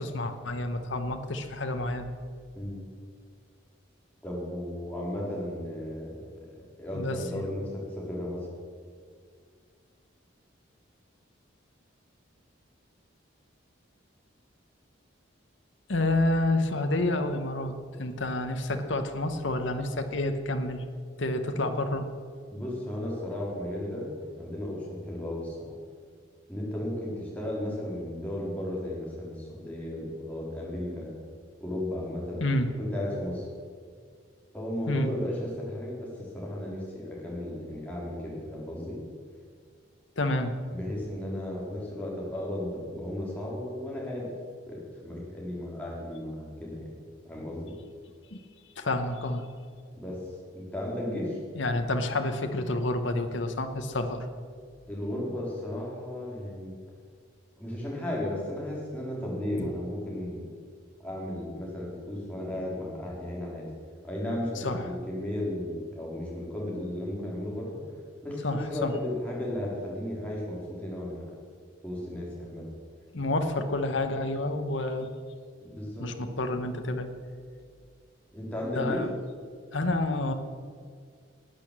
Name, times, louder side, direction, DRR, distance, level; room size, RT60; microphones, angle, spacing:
voice 1, 0.0-2.1 6.9-7.4 15.9-20.8 21.2-22.1 32.4-32.7 34.9-35.1 40.2-40.6 48.3-48.4 48.8-49.5 51.5-54.3 59.6-59.7 64.5-64.9 68.4-69.0 73.1-75.1 76.0-77.1 78.7-79.1 79.7-80.3, left 2 dB, 70° left, 7 dB, 1.0 m, -29 dB
voice 2, 4.2-8.5 22.5-25.5 26.5-31.1 31.6-32.4 32.7-33.5 34.5-36.1 36.3-39.0 40.7-44.3 44.7-46.9 47.2-47.7 49.9-50.2 50.5-51.4 54.9-56.7 57.6-60.5 61.0-63.6 64.0-67.8 68.2-71.2 71.8-72.6 75.6-76.1 78.3-79.0, left 1 dB, 5° left, -5 dB, 3.4 m, -34 dB
13.0 x 8.7 x 7.4 m, 2.1 s
head